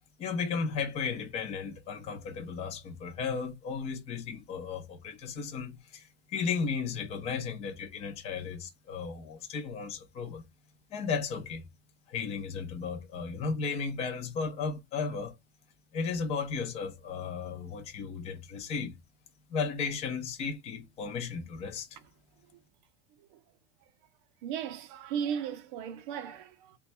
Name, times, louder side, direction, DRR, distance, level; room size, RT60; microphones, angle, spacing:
voice 1, 0.2-10.4 10.9-11.7 12.1-15.3 15.9-19.0 19.5-21.9, left 5 dB, 20° left, 0.5 m, -35 dB
voice 2, 24.4-26.8, right 8 dB, 45° right, 0.6 m, -36 dB
3.1 x 2.3 x 4.1 m
supercardioid pair, 165°, 35 cm